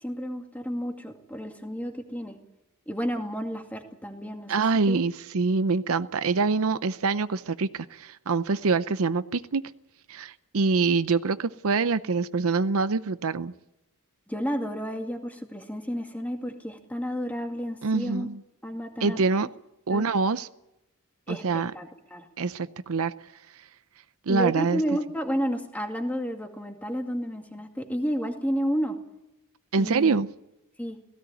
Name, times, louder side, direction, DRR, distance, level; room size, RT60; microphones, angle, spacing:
voice 1, 0.0-2.4 2.9-4.5 4.9-5.0 14.3-18.3 18.6-19.2 19.9-20.1 21.3-22.3 24.3-29.0 29.8-30.2 30.8-31.0, equal, 5° left, 4 dB, 2.3 m, -31 dB
voice 2, 4.5-9.7 10.1-13.5 17.8-18.4 19.0-19.5 19.9-20.5 21.3-21.7 22.4-23.1 24.3-24.8 29.7-30.3, right 4 dB, 70° right, 13 dB, 0.7 m, -25 dB
17.5 x 16.5 x 9.2 m, 0.91 s
head